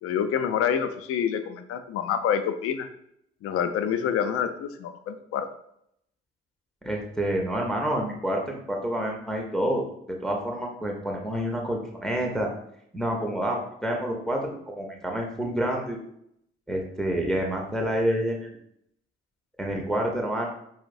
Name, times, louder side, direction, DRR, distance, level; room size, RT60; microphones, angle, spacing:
voice 1, 0.0-2.9 3.4-5.5, left 8 dB, 50° left, 9 dB, 0.4 m, -27 dB
voice 2, 6.8-9.8 10.2-12.5 12.9-16.0 16.7-18.6 19.6-20.5, right 1 dB, ahead, 0 dB, 0.6 m, -28 dB
4.4 x 2.0 x 2.5 m, 0.73 s
figure-of-eight pair, 40°, 31 cm